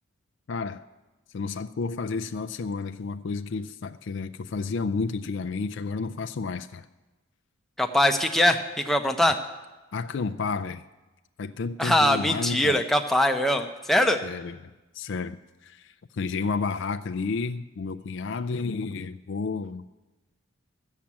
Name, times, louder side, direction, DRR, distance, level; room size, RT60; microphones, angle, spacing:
voice 1, 0.5-0.9 1.3-6.9 9.9-10.8 11.4-12.8 14.2-14.6 14.9-15.4 15.6-19.8, left 4 dB, 55° left, 8 dB, 0.4 m, -31 dB
voice 2, 7.8-9.4 11.8-14.2, left 1 dB, ahead, 4 dB, 0.7 m, -22 dB
13.5 x 7.3 x 8.5 m, 1.1 s
head